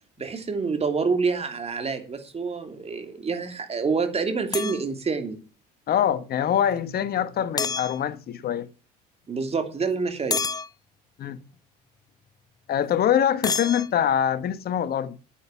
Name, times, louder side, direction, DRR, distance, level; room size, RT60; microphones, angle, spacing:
voice 1, 0.2-5.4 9.3-10.4, right 4 dB, 30° right, 2.9 m, -27 dB
sound 1, 4.5-4.8 7.6-8.0 10.3-10.7 13.4-13.9, left 5 dB, 20° left, 0.5 m, -27 dB
voice 2, 5.9-8.7 11.2-11.4 12.7-15.2, left 9 dB, 50° left, 1.2 m, -24 dB
9.1 x 9.0 x 7.3 m
hypercardioid pair, 75°, 21 cm